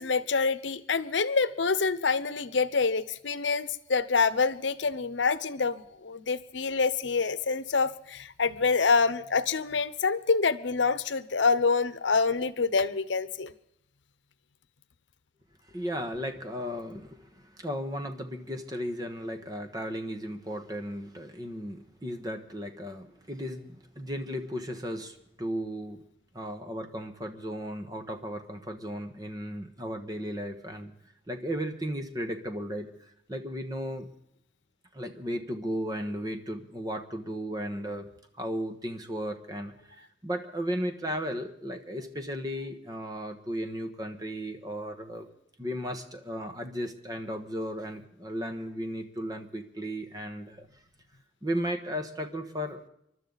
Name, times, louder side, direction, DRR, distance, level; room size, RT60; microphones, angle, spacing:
voice 1, 0.0-13.5, left 4 dB, 85° left, 14 dB, 0.8 m, -26 dB
voice 2, 15.6-26.0 26.3-30.9 31.3-34.1 34.9-38.1 38.3-45.3 45.6-50.7 51.4-52.9, equal, 20° right, 6 dB, 1.4 m, -35 dB
27.5 x 12.0 x 4.1 m, 0.77 s
head